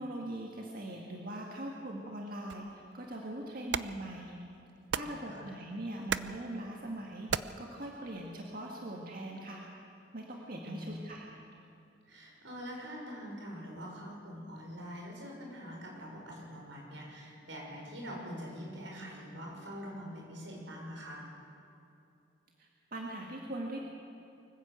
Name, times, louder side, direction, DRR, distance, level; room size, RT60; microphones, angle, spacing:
voice 1, 0.0-4.4 4.9-9.6 10.1-11.2 22.6-23.8, right 1 dB, 50° right, -1 dB, 2.0 m, -41 dB
sound 1, 2.5-8.6, right 6 dB, 70° right, 0.6 m, -40 dB
voice 2, 5.0-5.5 10.6-11.1 12.1-21.2, equal, 85° right, -1 dB, 6.3 m, -44 dB
24.5 x 15.0 x 8.3 m, 2.7 s
head